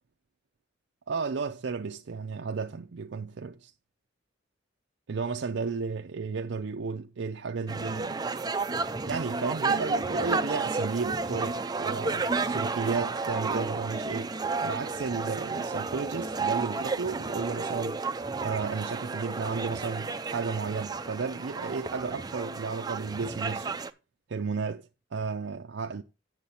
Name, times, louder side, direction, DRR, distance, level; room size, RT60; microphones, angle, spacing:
voice 1, 1.1-3.7 5.1-8.2 9.1-14.3 14.6-18.0 18.4-23.8 24.3-26.0, right 4 dB, 70° right, 0.5 m, -33 dB
sound 1, 7.7-23.9, right 4 dB, 20° right, 0.4 m, -32 dB
8.4 x 6.5 x 4.2 m
head